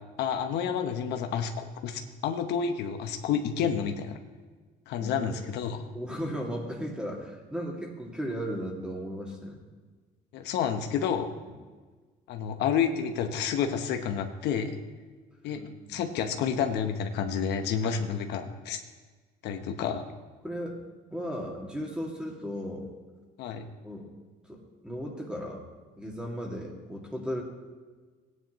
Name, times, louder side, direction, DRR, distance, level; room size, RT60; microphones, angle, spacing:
voice 1, 0.2-4.2 4.9-5.8 10.3-11.3 12.3-14.8 15.4-15.6 15.9-18.8 19.4-20.1 23.4-23.7, left 7 dB, 80° left, 6 dB, 0.9 m, -29 dB
voice 2, 5.0-5.3 5.9-9.6 11.5-11.6 15.5-16.0 16.5-16.6 20.4-20.8 21.1-22.9 23.8-24.1 24.4-25.6 26.0-27.4, equal, 5° right, -1 dB, 2.1 m, -36 dB
16.0 x 9.7 x 3.1 m, 1.4 s
cardioid pair, 110°, 17 cm